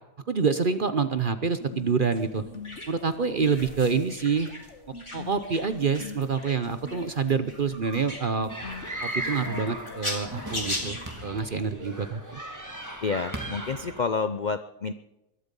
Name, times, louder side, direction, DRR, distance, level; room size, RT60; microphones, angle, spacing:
voice 1, 0.3-2.4 2.9-4.5 5.1-8.5 9.0-12.4, right 5 dB, 45° right, 10 dB, 0.7 m, -27 dB
sound 1, 1.6-11.9, left 4 dB, 50° left, 1.6 m, -45 dB
sound 2, 2.1-11.2, left 1 dB, 15° left, 2.8 m, -39 dB
sound 3, 8.5-14.0, right 1 dB, 10° right, 1.7 m, -37 dB
voice 2, 13.0-14.9, left 5 dB, 75° left, 10 dB, 0.4 m, -29 dB
21.5 x 12.0 x 5.4 m, 0.94 s
omnidirectional pair, 1.7 m